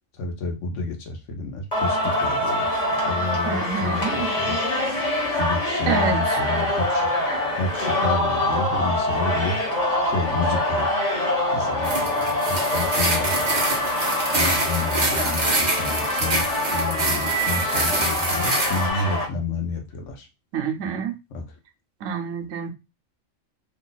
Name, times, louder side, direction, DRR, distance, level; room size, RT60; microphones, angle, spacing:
voice 1, 0.2-2.7 3.0-4.6 5.3-7.1 7.5-9.5 10.0-10.9 11.5-13.6 14.3-20.3 21.3-21.4, left 3 dB, 70° left, 1.1 m, -30 dB
Singing, 1.7-19.2, left 1 dB, 35° left, 1.4 m, -24 dB
voice 2, 3.4-4.3 5.9-6.4 20.5-21.1 22.0-22.7, right 6 dB, 80° right, 1.1 m, -27 dB
sound 1, 11.8-18.9, right 2 dB, 40° right, 0.9 m, -26 dB
3.1 x 2.4 x 3.9 m
omnidirectional pair, 1.3 m